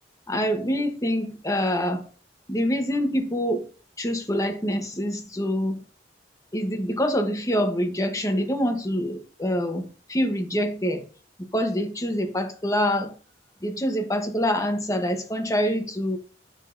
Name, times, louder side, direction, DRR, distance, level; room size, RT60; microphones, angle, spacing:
voice 1, 0.3-2.1 2.5-3.7 4.0-5.8 6.5-11.0 11.5-13.1 13.6-16.2, equal, 20° left, 1.1 m, -25 dB
9.9 x 6.3 x 2.7 m
head